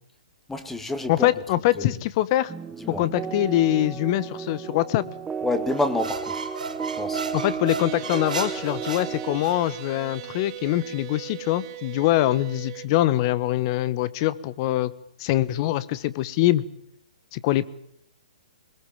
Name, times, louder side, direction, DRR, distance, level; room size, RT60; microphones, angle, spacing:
voice 1, 0.5-1.3 1.7-1.9 2.8-3.1 5.4-6.4 7.0-7.2, left 2 dB, 5° left, 9 dB, 2.0 m, -28 dB
voice 2, 1.1-2.5 3.0-5.0 7.3-14.9 15.2-16.6 17.3-17.7, left 15 dB, 35° left, 17 dB, 1.3 m, -23 dB
sound 1, 2.5-9.4, right 7 dB, 10° right, 0.9 m, -34 dB
sound 2, 5.7-9.8, right 5 dB, 80° right, 4.4 m, -34 dB
sound 3, 7.8-12.9, right 16 dB, 40° right, 2.6 m, -39 dB
23.0 x 21.0 x 7.4 m, 0.71 s
hypercardioid pair, 140°, 4 cm